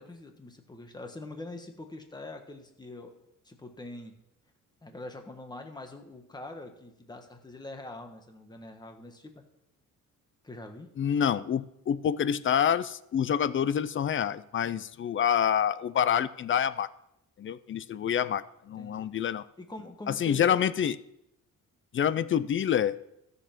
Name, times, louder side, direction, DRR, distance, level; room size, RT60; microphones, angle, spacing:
voice 1, 0.0-3.1 3.4-4.1 4.8-9.4 10.4-10.9 18.8-19.2 19.6-20.7, left 2 dB, 15° left, 5 dB, 1.3 m, -44 dB
voice 2, 11.0-16.9 17.4-19.4 20.1-21.0 21.9-23.0, left 8 dB, 40° left, 16 dB, 0.5 m, -27 dB
13.5 x 6.9 x 5.9 m, 0.81 s
cardioid pair, 150°, 32 cm